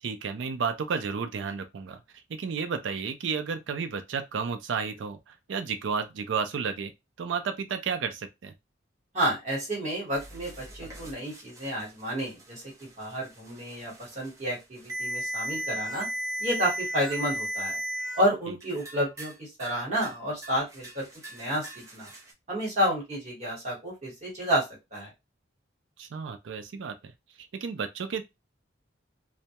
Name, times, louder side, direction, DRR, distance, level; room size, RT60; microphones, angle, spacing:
voice 1, 0.0-2.0 2.3-6.9 7.2-8.5 26.0-27.1 27.5-28.2, right 5 dB, 75° right, 0.4 m, -32 dB
voice 2, 9.1-16.1 16.4-17.8 18.1-21.0 21.3-22.1 22.5-24.6 24.9-25.1, equal, 40° right, 1.2 m, -30 dB
sound 1, 10.1-18.2 18.6-19.4 19.6-20.2 20.4-22.3, equal, 15° right, 0.5 m, -36 dB
2.2 x 2.0 x 2.8 m
head